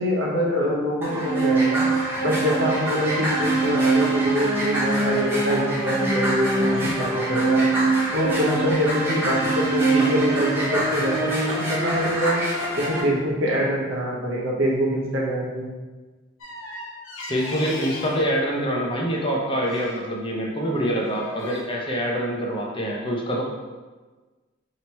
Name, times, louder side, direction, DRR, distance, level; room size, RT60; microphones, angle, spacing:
voice 1, 0.0-1.8 2.2-7.6 8.1-12.4 12.8-15.7, equal, 90° right, -3 dB, 0.9 m, -25 dB
sound 1, 1.0-13.0, right 2 dB, 10° right, 0.7 m, -23 dB
sound 2, 16.4-18.3 19.6-20.1 20.7-21.6, left 1 dB, 90° left, 0.8 m, -37 dB
voice 2, 17.3-23.4, equal, 25° left, -2 dB, 0.6 m, -25 dB
2.9 x 2.8 x 4.4 m, 1.3 s
head